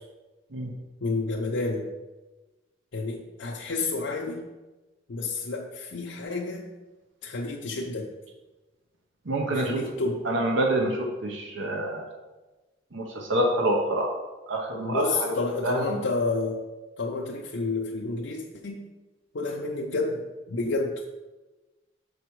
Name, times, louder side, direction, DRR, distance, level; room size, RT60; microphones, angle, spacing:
voice 1, 1.0-1.9 2.9-4.5 5.1-6.7 7.2-8.1 9.5-10.3 14.8-16.6 17.0-18.8 19.3-21.0, left 3 dB, 75° left, -2 dB, 0.6 m, -30 dB
voice 2, 9.3-9.9 10.3-12.0 12.9-14.2 14.5-15.3 15.6-16.0, right 1 dB, 90° right, 1 dB, 0.9 m, -27 dB
6.9 x 4.8 x 4.6 m, 1.2 s
head